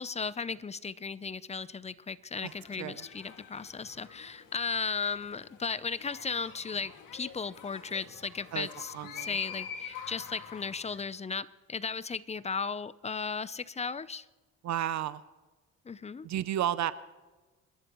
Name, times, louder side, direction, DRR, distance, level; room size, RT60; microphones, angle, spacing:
voice 1, 0.0-14.2 15.9-16.3, left 5 dB, 20° left, 17 dB, 0.5 m, -36 dB
sound 1, 2.3-11.0, left 7 dB, 90° left, 2.1 m, -46 dB
voice 2, 8.9-9.4 14.6-15.2 16.2-16.9, right 11 dB, 65° right, 15 dB, 0.6 m, -32 dB
27.0 x 13.0 x 3.0 m, 1.2 s
cardioid pair, 90°, 30 cm